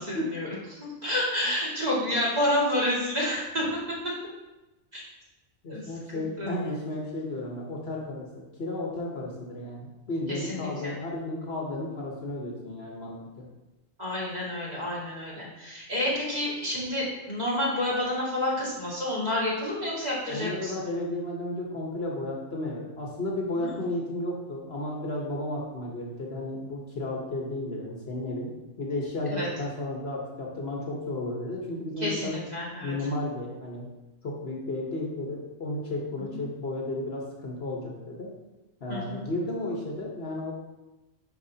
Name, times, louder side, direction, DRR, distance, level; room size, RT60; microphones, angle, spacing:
voice 1, 0.0-4.1 4.9-5.0 5.7-5.9 6.4-6.6 10.3-10.9 14.0-20.7 23.5-23.8 29.3-29.5 32.0-32.9 38.9-39.2, left 1 dB, 30° right, -7 dB, 2.1 m, -29 dB
voice 2, 5.6-13.5 20.3-28.5 28.8-32.4 32.8-33.8 34.2-38.3 38.8-40.5, left 1 dB, 55° left, -2 dB, 1.2 m, -33 dB
10.5 x 4.6 x 2.8 m, 1.0 s
omnidirectional pair, 1.3 m